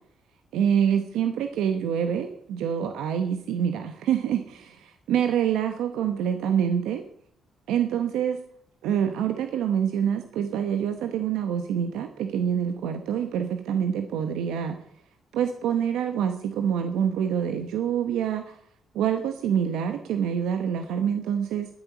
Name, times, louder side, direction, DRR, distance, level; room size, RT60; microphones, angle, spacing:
voice 1, 0.5-7.0 7.7-8.4 8.8-14.8 15.3-18.6 18.9-21.7, right 8 dB, 90° right, 7 dB, 1.0 m, -26 dB
11.0 x 9.8 x 6.1 m, 0.63 s
cardioid pair, 90°, 0 cm